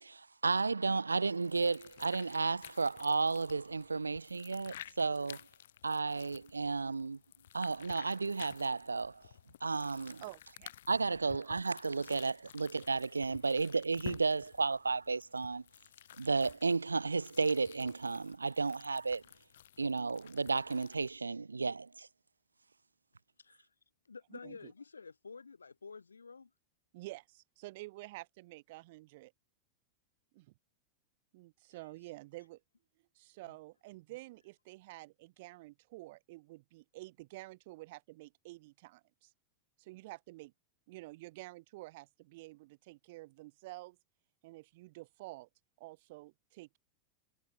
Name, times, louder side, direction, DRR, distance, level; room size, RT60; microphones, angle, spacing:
voice 1, 0.0-5.4 5.8-7.2 7.5-9.2 9.6-10.2 10.9-15.6 16.2-19.2 19.8-22.1, right 4 dB, 80° right, 0.7 m, -33 dB
sound 1, 1.2-21.2, left 11 dB, 60° left, 4.5 m, -54 dB
voice 2, 10.2-10.7 11.5-11.6 24.3-24.7 26.9-29.3 30.3-30.5 31.3-32.6 33.2-39.3 39.8-40.5 40.9-44.0 44.4-45.5 45.8-46.8, right 20 dB, 50° right, 3.5 m, -50 dB
voice 3, 23.4-23.7 24.0-26.5 31.7-31.8 33.4-33.6, left 5 dB, 75° left, 5.0 m, -51 dB
figure-of-eight pair, 90°, 0 cm